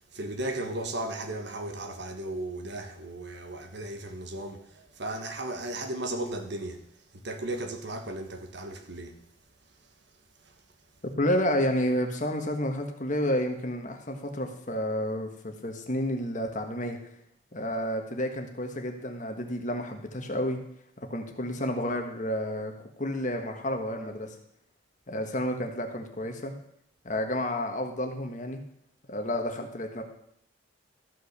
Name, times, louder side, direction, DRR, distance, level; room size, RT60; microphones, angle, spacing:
voice 1, 0.0-6.8 7.1-9.2 10.4-10.5, right 1 dB, 60° right, 1.4 m, -36 dB
voice 2, 11.2-17.0 17.5-20.6 21.0-22.7 23.0-24.3 25.1-26.5 27.0-28.6 29.1-30.0, equal, 40° left, 1.4 m, -30 dB
14.0 x 5.6 x 6.7 m
head